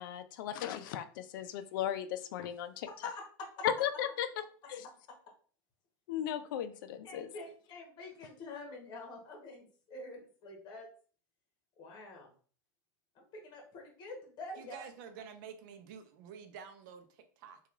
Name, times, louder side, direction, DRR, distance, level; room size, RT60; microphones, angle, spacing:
voice 1, 0.0-2.9 3.6-4.3 4.7-4.9 6.1-7.3, left 10 dB, 75° left, 10 dB, 0.4 m, -36 dB
voice 2, 2.9-3.7 4.8-5.2 7.0-10.9 11.8-12.3 13.1-14.9, left 2 dB, 40° left, 2 dB, 1.0 m, -47 dB
voice 3, 14.6-17.6, right 7 dB, 70° right, 8 dB, 0.5 m, -49 dB
2.9 x 2.3 x 2.4 m, 0.43 s
supercardioid pair, 115°, 11 cm